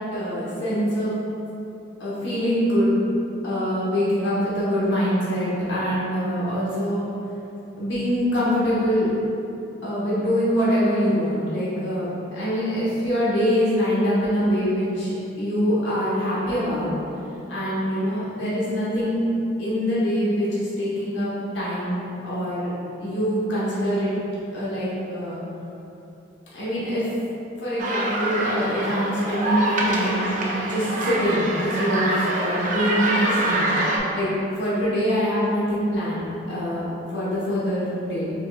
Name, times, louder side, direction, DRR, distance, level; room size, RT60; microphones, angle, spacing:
voice 1, 0.1-1.1 2.0-2.9 3.4-7.1 7.8-9.1 9.8-16.9 17.5-19.2 19.6-24.1 24.5-25.4 26.5-27.1 27.6-30.3 30.6-34.3 34.6-38.3, equal, 85° left, -9 dB, 1.0 m, -24 dB
sound 1, 27.8-34.0, right 1 dB, 45° right, 0.5 m, -25 dB
4.1 x 3.8 x 2.3 m, 2.9 s
head